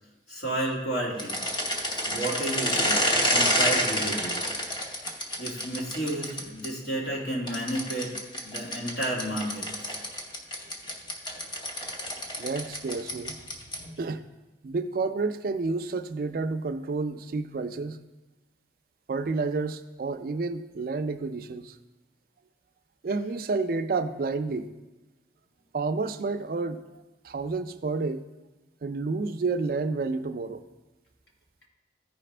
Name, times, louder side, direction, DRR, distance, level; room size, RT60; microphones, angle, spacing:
voice 1, 0.3-1.4 2.1-4.4 5.4-8.1 8.4-9.7, right 1 dB, 75° left, -3 dB, 2.1 m, -31 dB
sound 1, 1.2-6.7 7.5-13.9, equal, 25° left, 0.8 m, -29 dB
voice 2, 12.4-13.4 14.0-14.3 14.6-18.0 19.1-21.8 23.0-24.7 25.7-28.2 28.8-30.6, right 3 dB, 50° right, 10 dB, 0.3 m, -30 dB
14.0 x 5.0 x 3.3 m, 1.1 s
head